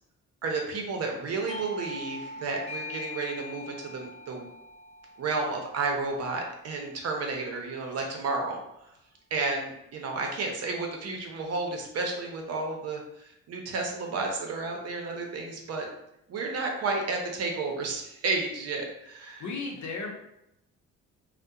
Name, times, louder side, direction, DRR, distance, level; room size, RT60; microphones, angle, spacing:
voice 1, 0.4-4.4 5.2-8.6 9.3-15.9 16.3-19.4, right 3 dB, 55° right, 1 dB, 0.6 m, -32 dB
Doorbell, 1.5-6.8, left 2 dB, 20° left, 0.4 m, -42 dB
voice 2, 19.4-20.1, left 4 dB, 70° left, 0 dB, 0.7 m, -34 dB
2.7 x 2.1 x 2.3 m, 0.81 s
cardioid pair, 90°, 30 cm